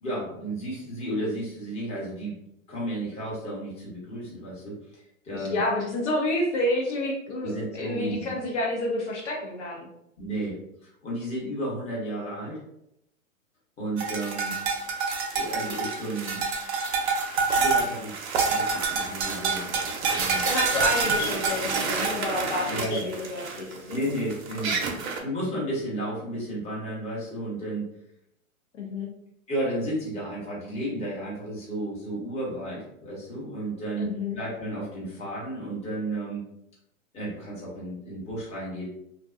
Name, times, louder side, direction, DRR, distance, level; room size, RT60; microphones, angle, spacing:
voice 1, 0.0-2.3 2.7-5.6 7.4-8.3 10.2-10.6 10.8-12.6 13.8-14.5 15.3-16.4 17.5-18.1 18.4-20.4 22.7-23.1 23.9-27.9 29.5-36.4 37.1-38.9, right 1 dB, 15° left, -6 dB, 0.9 m, -33 dB
voice 2, 5.3-9.9 20.4-24.0 28.8-29.1 34.0-34.4, left 1 dB, 55° left, -2 dB, 0.7 m, -29 dB
sound 1, 14.0-25.2, right 4 dB, 50° right, 0.6 m, -27 dB
2.6 x 2.2 x 2.3 m, 0.78 s
hypercardioid pair, 120°, 42 cm